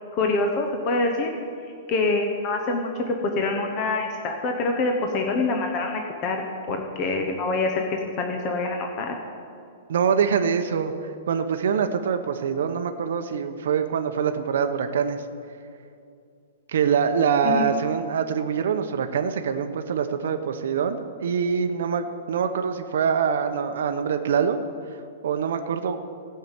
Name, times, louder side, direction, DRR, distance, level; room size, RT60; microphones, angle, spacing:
voice 1, 0.1-1.3 1.9-6.4 6.7-9.2 17.4-17.7, left 3 dB, 25° left, 3 dB, 0.9 m, -25 dB
voice 2, 9.9-15.2 16.7-24.6 24.9-26.0, right 7 dB, 65° right, 7 dB, 0.8 m, -24 dB
16.5 x 5.7 x 8.0 m, 2.5 s
hypercardioid pair, 175°, 0 cm